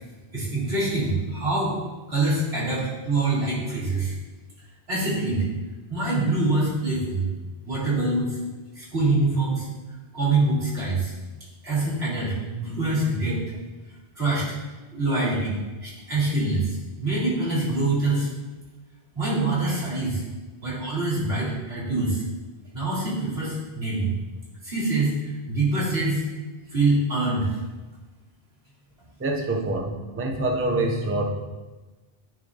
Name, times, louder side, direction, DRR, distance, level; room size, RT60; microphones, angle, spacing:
voice 1, 0.3-1.8 2.1-4.1 4.9-5.4 5.9-7.3 7.7-8.4 8.7-9.7 10.1-11.1 11.6-13.4 14.1-14.4 14.9-15.6 15.8-18.3 19.1-20.2 20.6-22.2 22.7-24.1 24.6-26.2 26.7-27.5, right 2 dB, 90° right, -9 dB, 2.7 m, -25 dB
voice 2, 29.2-31.2, right 2 dB, 20° right, 1 dB, 0.5 m, -25 dB
9.5 x 4.2 x 2.8 m, 1.2 s
omnidirectional pair, 1.0 m